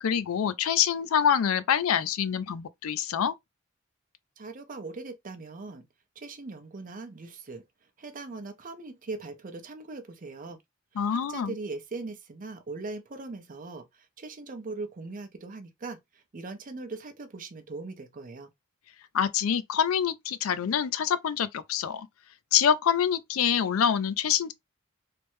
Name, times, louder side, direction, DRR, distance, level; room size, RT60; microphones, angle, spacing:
voice 1, 0.0-3.3 11.0-11.5 19.1-22.1 22.5-24.5, left 8 dB, 85° left, 0.4 m, -26 dB
voice 2, 4.4-5.9 6.2-7.7 8.0-10.6 11.1-18.5, right 3 dB, 40° right, 0.6 m, -40 dB
3.3 x 2.1 x 3.0 m
head